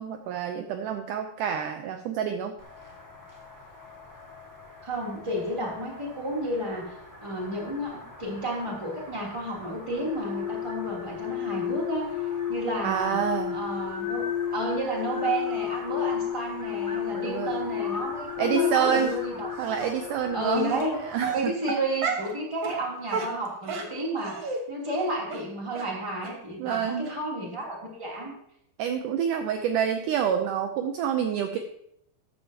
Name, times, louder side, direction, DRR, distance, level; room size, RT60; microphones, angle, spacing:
voice 1, 0.0-2.6 12.8-13.6 17.1-17.5 18.4-19.2 19.6-21.5 26.6-27.1 28.8-31.6, right 8 dB, 75° right, 6 dB, 2.0 m, -28 dB
sound 1, 2.6-21.4, left 1 dB, 5° left, 1.5 m, -44 dB
voice 2, 4.8-6.9 7.2-13.2 13.5-14.2 14.5-19.5 19.7-19.9 20.3-21.0 21.3-28.3, right 1 dB, 10° right, -3 dB, 2.7 m, -31 dB
sound 2, 9.9-20.9, left 11 dB, 75° left, 2.0 m, -32 dB
Dog, 18.8-19.2 19.8-19.9 20.7-20.8 21.2-22.3 22.6-22.8 23.1-24.6 24.9-25.0 25.3-25.4 25.8-25.9 26.2-26.3 26.7-26.8 27.0-27.1, right 5 dB, 55° right, 1.8 m, -32 dB
14.0 x 10.5 x 2.9 m, 0.76 s
omnidirectional pair, 4.2 m